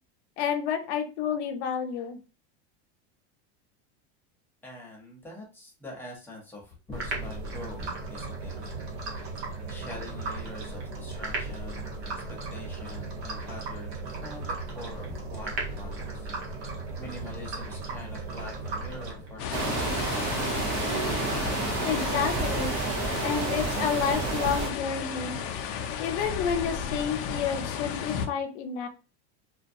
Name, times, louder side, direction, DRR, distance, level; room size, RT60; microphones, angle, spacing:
voice 1, 0.4-2.2 21.8-22.8 23.2-25.4 26.0-28.9, left 7 dB, 85° left, 6 dB, 0.7 m, -30 dB
voice 2, 4.6-8.6 9.7-11.9 12.3-16.3 17.0-20.5, left 1 dB, 5° left, -3 dB, 0.8 m, -44 dB
sound 1, 6.9-19.6, right 3 dB, 75° right, 1.1 m, -36 dB
sound 2, 19.4-28.3, left 7 dB, 45° left, 0.4 m, -33 dB
sound 3, 19.5-24.7, right 5 dB, 50° right, 0.6 m, -30 dB
2.2 x 2.2 x 2.6 m, 0.34 s
supercardioid pair, 130°, 33 cm